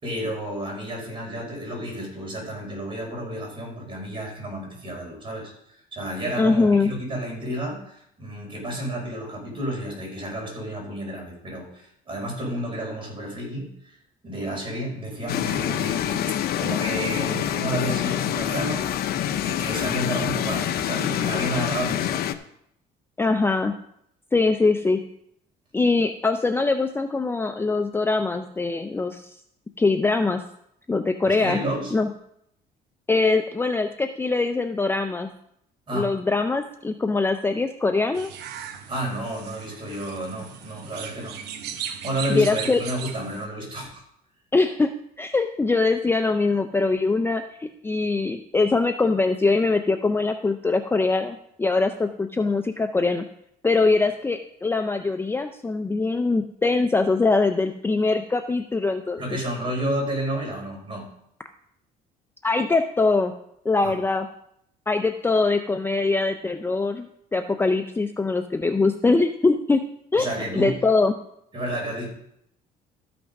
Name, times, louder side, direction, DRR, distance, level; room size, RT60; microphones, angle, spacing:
voice 1, 0.0-14.0 14.2-22.2 31.2-31.9 35.9-36.1 38.9-41.4 42.0-44.0 59.2-61.1 63.8-64.0 70.2-70.8 71.5-72.1, right 1 dB, 30° right, -1 dB, 5.3 m, -31 dB
voice 2, 6.4-6.9 23.2-23.7 24.3-25.0 25.7-29.3 29.8-30.4 30.9-31.6 31.9-32.1 33.1-35.3 35.9-38.3 42.3-42.8 44.5-53.2 53.6-59.2 62.4-63.3 63.6-64.3 64.9-69.8 70.1-70.3 70.5-71.1, left 3 dB, 15° left, 7 dB, 0.5 m, -22 dB
sound 1, 15.3-22.3, left 11 dB, 65° left, 0.7 m, -26 dB
sound 2, 38.1-43.5, right 9 dB, 80° right, 1.0 m, -37 dB
13.0 x 6.0 x 5.3 m, 0.73 s
cardioid pair, 110°, 17 cm